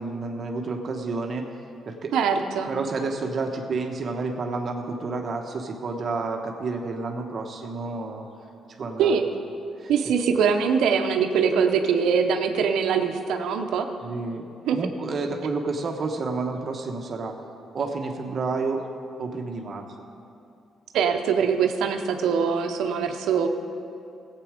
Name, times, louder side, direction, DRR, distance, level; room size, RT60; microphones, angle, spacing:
voice 1, 0.0-1.5 1.9-2.1 2.7-8.3 8.8-9.1 9.8-9.9 14.0-14.4 14.7-17.3 17.7-18.8 19.2-19.8, right 3 dB, 50° right, 3 dB, 1.1 m, -30 dB
voice 2, 2.1-2.7 9.0-9.2 9.9-13.9 14.6-14.8 20.9-23.5, right 6 dB, 80° right, 5 dB, 0.8 m, -23 dB
15.5 x 8.4 x 5.1 m, 2.5 s
cardioid pair, 90°, 0 cm